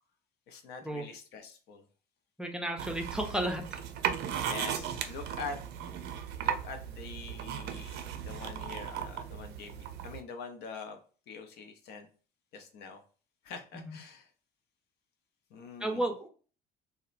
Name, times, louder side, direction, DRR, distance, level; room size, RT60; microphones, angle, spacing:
voice 1, 0.5-1.8 4.3-5.6 6.4-11.0 11.3-12.1 12.5-13.0 13.4-14.3 15.5-16.0, left 5 dB, 75° left, 5 dB, 0.6 m, -44 dB
voice 2, 2.4-3.8 13.7-13.9 15.8-16.3, right 1 dB, 5° right, 3 dB, 0.5 m, -33 dB
sound 1, 2.8-10.2, right 9 dB, 75° right, 0.4 m, -36 dB
2.8 x 2.1 x 2.4 m, 0.39 s
cardioid pair, 110°, 17 cm